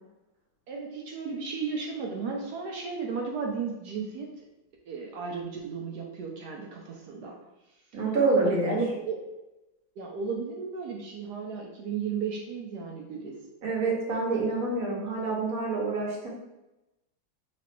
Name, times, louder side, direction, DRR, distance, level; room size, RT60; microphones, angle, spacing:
voice 1, 0.7-4.3 4.9-7.4 8.4-9.2 10.0-13.4, right 5 dB, 70° right, 0 dB, 1.0 m, -34 dB
voice 2, 7.9-8.8 13.6-16.3, right 3 dB, 50° right, -2 dB, 1.3 m, -27 dB
3.1 x 3.0 x 4.4 m, 0.97 s
omnidirectional pair, 2.1 m